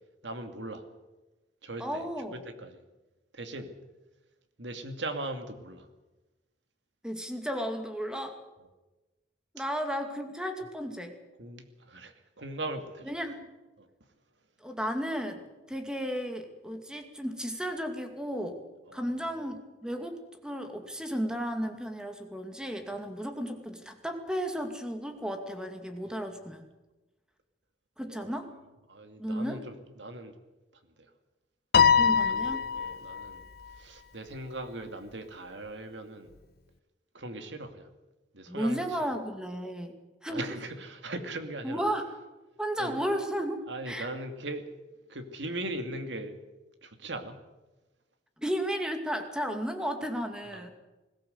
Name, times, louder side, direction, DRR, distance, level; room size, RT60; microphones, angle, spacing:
voice 1, 0.2-0.8 1.6-2.0 2.3-2.8 3.3-3.7 4.6-5.9 11.4-13.1 13.8-13.9 18.9-19.5 26.1-26.2 28.1-28.4 28.9-30.3 31.0-31.1 31.9-33.4 33.8-36.3 37.1-37.9 38.3-39.1 40.3-41.8 42.8-43.0 43.7-44.7 45.1-46.3 46.8-47.4 50.5-50.7, right 2 dB, 85° right, 7 dB, 2.5 m, -39 dB
voice 2, 1.8-2.3 7.0-8.4 9.5-11.2 13.1-13.5 14.6-18.6 18.9-26.7 28.0-28.5 29.2-29.6 32.0-32.6 38.5-40.5 41.6-42.0 42.6-44.1 48.4-50.7, equal, 5° right, 6 dB, 2.3 m, -34 dB
Piano, 31.7-33.3, left 6 dB, 60° left, 0.9 m, -23 dB
20.5 x 17.0 x 8.0 m, 1.1 s
head